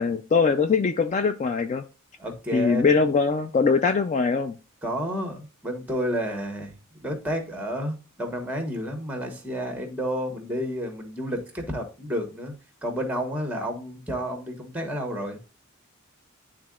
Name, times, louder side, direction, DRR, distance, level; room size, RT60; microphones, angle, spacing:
voice 1, 0.0-1.8 2.5-4.6, left 5 dB, 35° left, 0.3 m, -22 dB
voice 2, 2.2-3.0 4.8-6.7 7.0-12.5 12.8-15.4, equal, 5° right, 1.2 m, -30 dB
10.5 x 3.7 x 2.4 m
head